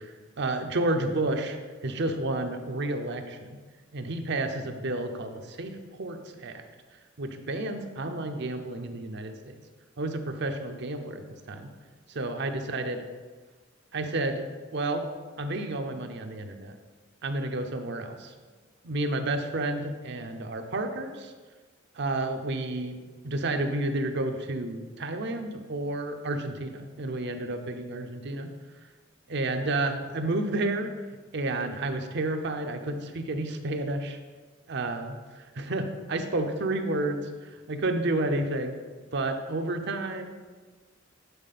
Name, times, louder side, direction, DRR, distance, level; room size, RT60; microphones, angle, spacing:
voice 1, 0.0-1.6 1.8-3.6 3.9-6.6 7.2-9.5 10.0-11.2 11.5-11.7 12.2-13.0 13.9-14.5 14.7-15.1 15.4-16.7 17.2-18.3 18.8-21.3 22.0-28.5 29.3-30.9 31.3-34.2 34.7-38.8 39.1-40.4, right 2 dB, 60° right, 6 dB, 0.7 m, -31 dB
10.5 x 4.2 x 4.2 m, 1.4 s
head